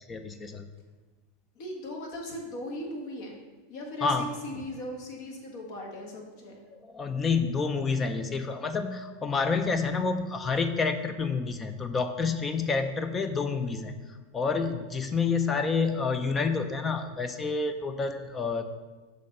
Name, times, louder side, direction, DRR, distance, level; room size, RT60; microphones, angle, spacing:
voice 1, 0.1-0.7 4.0-4.3 6.7-13.9 14.3-18.7, left 4 dB, 25° left, 8 dB, 0.4 m, -28 dB
voice 2, 1.5-3.4 3.7-6.5, left 1 dB, 55° left, 0 dB, 1.5 m, -38 dB
6.4 x 3.2 x 5.4 m, 1.3 s
hypercardioid pair, 100°, 0 cm